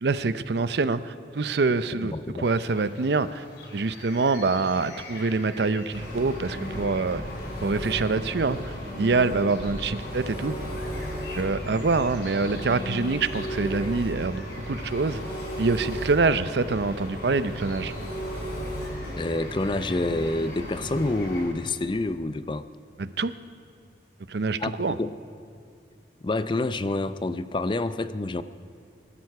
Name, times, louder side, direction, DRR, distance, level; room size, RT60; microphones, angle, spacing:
voice 1, 0.0-3.4 3.7-7.2 7.6-10.6 11.3-15.2 15.6-17.9 23.0-23.3 24.3-25.0, right 3 dB, 70° right, 14 dB, 0.6 m, -25 dB
voice 2, 2.0-2.5 19.2-22.7 24.6-25.2 26.2-28.4, left 2 dB, 25° left, 13 dB, 0.4 m, -28 dB
sound 1, 2.4-21.4, left 2 dB, 85° left, 3.0 m, -47 dB
Engine, 5.9-21.5, equal, 55° left, 4.3 m, -35 dB
23.5 x 12.5 x 4.8 m, 2.5 s
head